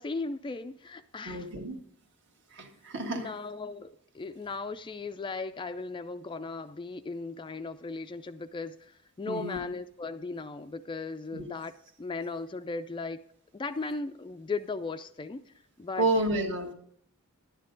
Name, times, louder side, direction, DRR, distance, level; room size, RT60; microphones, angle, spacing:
voice 1, 0.0-1.6 3.1-11.7 12.0-13.2 13.5-16.1, left 3 dB, 20° left, 10 dB, 0.3 m, -37 dB
voice 2, 1.2-1.7 2.5-3.3 9.3-9.6 11.3-11.5 16.0-16.7, right 1 dB, 55° right, 4 dB, 1.5 m, -30 dB
11.5 x 9.6 x 3.8 m, 0.69 s
head